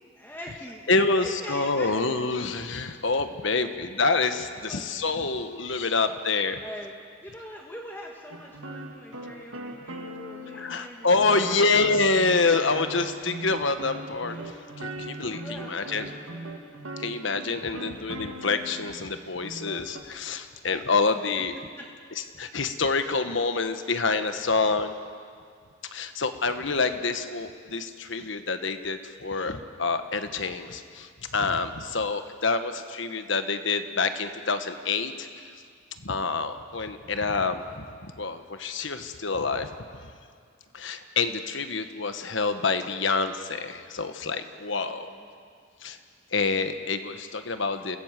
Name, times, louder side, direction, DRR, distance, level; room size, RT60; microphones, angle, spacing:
voice 1, 0.1-2.1 4.6-4.9 6.6-6.9 7.2-11.3 14.3-14.7 15.2-16.5 44.7-45.3, equal, 10° left, -1 dB, 1.7 m, -43 dB
voice 2, 0.9-6.6 10.5-16.1 17.0-21.5 22.2-24.9 25.9-35.6 36.0-40.0 40.7-45.1 45.8-46.0 46.3-48.0, left 4 dB, 65° left, 9 dB, 1.3 m, -27 dB
sound 1, 8.3-10.9 11.2-19.0 19.4-20.0, right 1 dB, 85° right, 2.0 m, -40 dB
28.5 x 17.0 x 7.6 m, 2.1 s
head